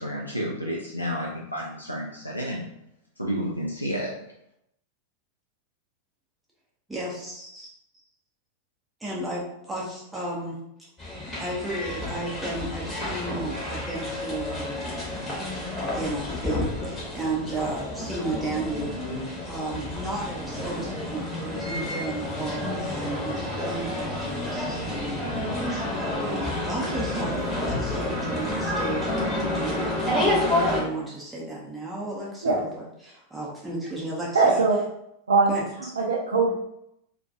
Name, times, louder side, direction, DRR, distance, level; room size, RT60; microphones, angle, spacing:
voice 1, 0.0-2.7 3.2-4.2, equal, 90° left, -3 dB, 0.3 m, -31 dB
voice 2, 6.9-7.7 9.0-10.6 11.4-14.7 15.2-34.6 35.5-35.9, right 2 dB, 10° right, -5 dB, 0.6 m, -34 dB
sound 1, 11.0-30.8, left 1 dB, 20° left, 0.9 m, -29 dB
voice 3, 34.3-34.8 35.3-35.6 36.0-36.5, right 4 dB, 70° right, -2 dB, 0.4 m, -20 dB
2.3 x 2.2 x 2.6 m, 0.79 s
figure-of-eight pair, 90°, 0 cm